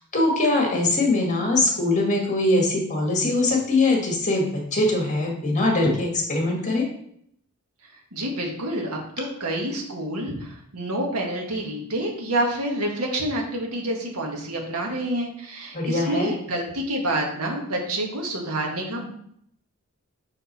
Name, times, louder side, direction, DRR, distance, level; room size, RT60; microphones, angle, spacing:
voice 1, 0.0-6.9 15.7-16.3, left 2 dB, 35° left, 0 dB, 1.7 m, -22 dB
voice 2, 8.1-19.1, right 1 dB, 90° right, 0 dB, 1.5 m, -28 dB
6.0 x 4.6 x 4.2 m, 0.69 s
head